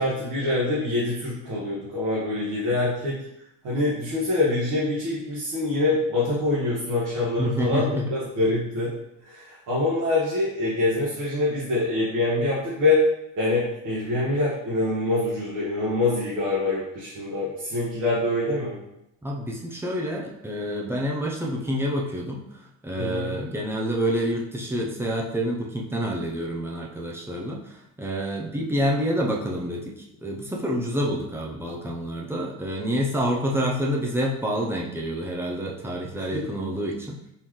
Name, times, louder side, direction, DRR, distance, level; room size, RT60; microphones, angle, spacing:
voice 1, 0.0-3.2 3.6-8.9 9.3-13.0 13.4-18.8 23.0-23.3 36.3-36.4, left 2 dB, 55° right, -8 dB, 1.4 m, -25 dB
voice 2, 7.4-8.2 19.2-37.2, equal, 5° right, -2 dB, 0.5 m, -28 dB
4.3 x 3.1 x 3.7 m, 0.80 s
cardioid pair, 165°, 34 cm